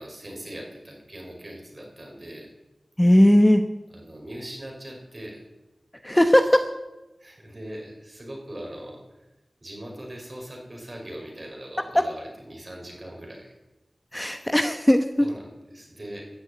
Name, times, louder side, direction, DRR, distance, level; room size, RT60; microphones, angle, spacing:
voice 1, 0.0-2.5 3.9-5.4 7.2-9.0 9.6-13.5 15.2-16.3, right 1 dB, 40° right, 0 dB, 5.3 m, -40 dB
voice 2, 3.0-3.6 6.0-6.6 11.9-12.0 14.1-15.3, equal, 15° left, 8 dB, 1.0 m, -18 dB
14.0 x 7.3 x 9.3 m, 1.0 s
wide cardioid pair, 50°, 0 cm